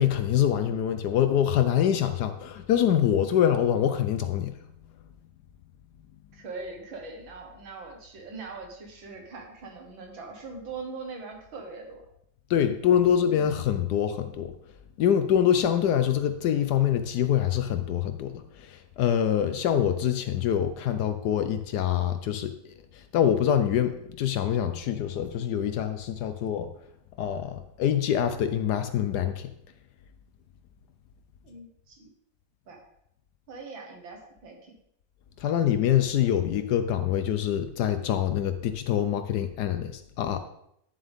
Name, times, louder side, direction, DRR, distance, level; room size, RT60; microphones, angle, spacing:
voice 1, 0.0-4.5 12.5-14.5 15.0-22.6 22.9-26.7 27.2-29.5 35.4-40.4, left 9 dB, 70° left, 10 dB, 1.1 m, -25 dB
voice 2, 6.3-12.1 13.1-13.2 31.4-32.1 32.7-32.8 33.5-34.7, right 4 dB, 85° right, 2 dB, 2.3 m, -41 dB
11.0 x 7.3 x 3.5 m, 0.74 s
omnidirectional pair, 2.1 m